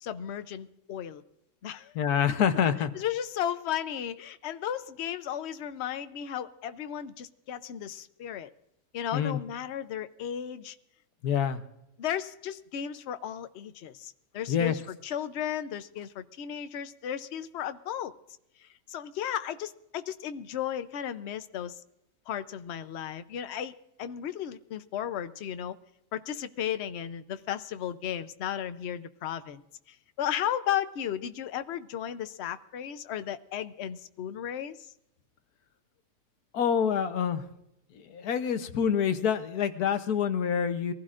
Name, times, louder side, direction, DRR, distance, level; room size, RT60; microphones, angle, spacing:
voice 1, 0.0-1.2 1.6-1.9 2.3-2.4 2.9-8.5 8.9-10.7 12.0-18.1 18.6-21.8 22.3-23.7 24.0-25.8 26.1-29.6 29.9-34.9, left 10 dB, 55° left, 11 dB, 0.8 m, -35 dB
voice 2, 1.9-2.9 9.1-9.4 11.2-11.6 14.5-14.7 36.5-37.4 37.9-40.9, left 8 dB, 70° left, 10 dB, 1.4 m, -26 dB
23.5 x 15.5 x 2.5 m, 0.83 s
omnidirectional pair, 1.7 m